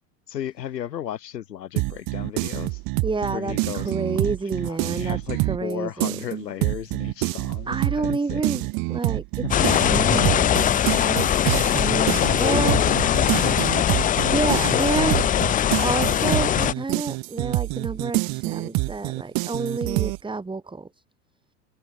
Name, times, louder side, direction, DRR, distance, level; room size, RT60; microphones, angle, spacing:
voice 1, 0.3-2.8 3.3-4.3 4.6-8.6 9.4-9.9 11.6-13.6, left 10 dB, 75° left, 4.6 m, -35 dB
sound 1, 1.8-5.7 6.0-20.2, right 26 dB, 45° right, 2.7 m, -27 dB
voice 2, 3.0-5.2 5.5-6.1 7.7-11.3 11.8-12.8 14.3-15.2 15.8-20.9, right 3 dB, 10° right, 3.5 m, -29 dB
sound 2, 9.5-16.7, left 10 dB, 15° left, 0.6 m, -21 dB
open air
hypercardioid pair, 95°, 50 cm